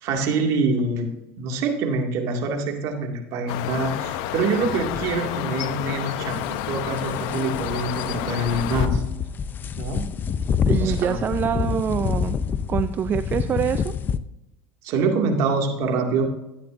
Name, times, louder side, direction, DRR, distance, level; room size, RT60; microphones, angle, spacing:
voice 1, 0.0-9.0 9.8-10.1 10.8-11.2 14.8-16.3, right 3 dB, 60° right, 3 dB, 2.2 m, -25 dB
sound 1, 3.5-8.9, left 12 dB, 70° left, 0.7 m, -30 dB
sound 2, 6.3-14.2, left 7 dB, 35° left, 0.6 m, -27 dB
voice 2, 10.7-12.4 12.7-13.9, right 8 dB, 35° right, 11 dB, 0.4 m, -25 dB
13.0 x 9.6 x 2.6 m, 0.91 s
supercardioid pair, 105°, 6 cm